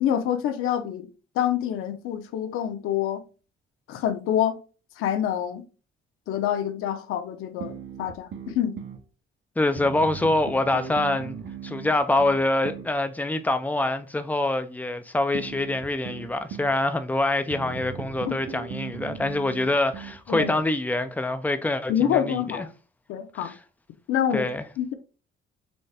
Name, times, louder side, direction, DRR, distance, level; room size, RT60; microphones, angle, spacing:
voice 1, 0.0-1.1 1.4-3.2 3.9-4.6 5.0-5.6 6.3-8.8 18.3-18.4 20.3-20.5 21.9-22.7 23.1-23.5 24.1-24.5 24.8-24.9, left 10 dB, 85° left, 0.7 m, -26 dB
sound 1, 7.6-9.0 9.8-12.9 15.3-16.8 17.5-20.7, right 7 dB, 60° right, 0.7 m, -38 dB
voice 2, 9.6-11.4 11.6-22.7 23.4-23.6 24.3-24.7, left 2 dB, 10° left, 0.3 m, -25 dB
4.2 x 3.2 x 3.3 m
cardioid pair, 155°, 21 cm